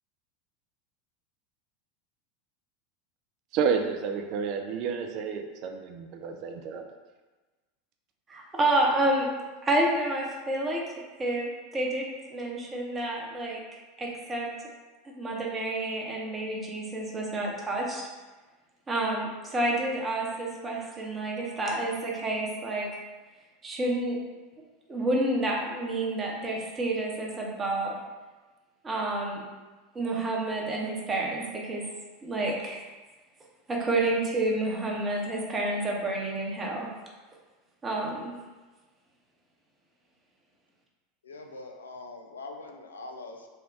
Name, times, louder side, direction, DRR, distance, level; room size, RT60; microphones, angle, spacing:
voice 1, 3.5-6.9, right 6 dB, 50° right, 5 dB, 0.3 m, -30 dB
voice 2, 8.3-9.3 9.6-10.8 11.2-14.5 15.2-18.1 18.9-22.9 23.6-24.2 24.9-28.0 28.8-29.4 29.9-31.8 32.2-32.8 33.7-36.9 37.8-38.3, right 2 dB, 20° right, -1 dB, 0.8 m, -29 dB
voice 3, 41.2-43.5, left 2 dB, 80° left, 3 dB, 0.4 m, -43 dB
3.5 x 2.2 x 3.8 m, 1.2 s
figure-of-eight pair, 80°, 0 cm